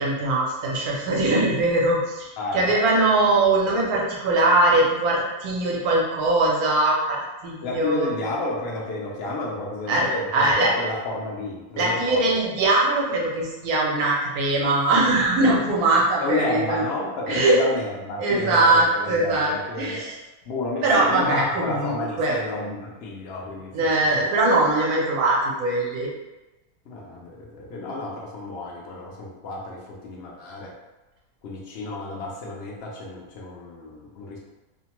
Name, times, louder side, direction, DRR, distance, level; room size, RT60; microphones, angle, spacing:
voice 1, 0.0-8.1 9.9-10.1 10.3-10.7 11.8-16.8 17.3-17.6 18.2-20.1 20.8-22.3 23.7-26.1, right 2 dB, 75° right, -3 dB, 1.2 m, -21 dB
voice 2, 2.4-2.7 7.6-12.4 16.2-20.1 20.5-23.9 26.9-30.7 31.4-34.4, left 2 dB, 70° left, -3 dB, 0.6 m, -31 dB
2.8 x 2.1 x 2.9 m, 1.1 s
omnidirectional pair, 1.6 m